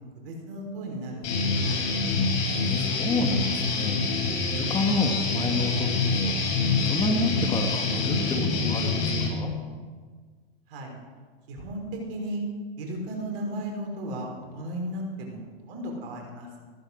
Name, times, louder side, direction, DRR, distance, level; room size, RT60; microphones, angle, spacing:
voice 1, 0.1-1.8 10.7-11.0 11.5-12.4 12.8-16.6, right 1 dB, 60° right, 0 dB, 5.5 m, -35 dB
Guitar, 1.2-9.3, left 4 dB, 50° left, 6.2 m, -26 dB
voice 2, 2.5-4.2 4.6-6.3 6.8-9.5, left 2 dB, 15° left, 3 dB, 2.0 m, -29 dB
15.5 x 13.5 x 6.5 m, 1.5 s
hypercardioid pair, 110°, 31 cm